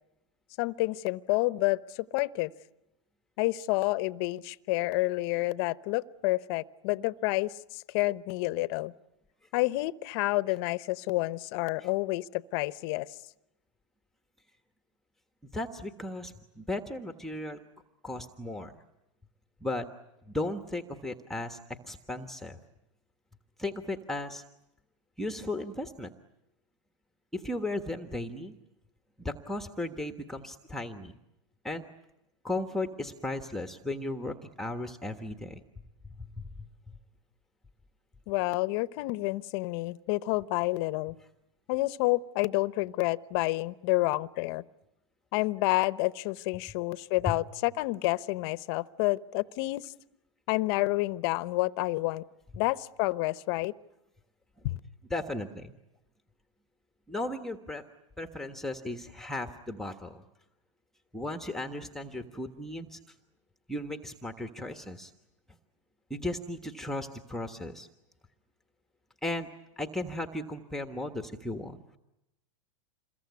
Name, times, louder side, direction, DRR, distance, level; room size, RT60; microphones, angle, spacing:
voice 1, 0.6-2.5 3.4-8.9 9.5-13.2 38.3-41.2 41.7-44.6 45.3-49.9 50.5-52.2 52.5-53.7 54.6-54.8, left 20 dB, 50° left, 16 dB, 0.9 m, -29 dB
voice 2, 15.5-17.6 18.0-18.7 19.6-19.9 20.3-22.6 23.6-24.4 25.2-26.1 27.3-28.6 29.2-31.1 31.6-31.9 32.4-35.6 36.2-37.0 47.3-47.4 55.1-55.7 57.1-57.8 58.2-60.2 61.1-63.0 63.7-65.1 66.1-67.9 69.2-69.5 69.8-71.8, left 2 dB, ahead, 6 dB, 1.4 m, -36 dB
27.5 x 22.0 x 9.6 m, 0.90 s
hypercardioid pair, 125°, 16 cm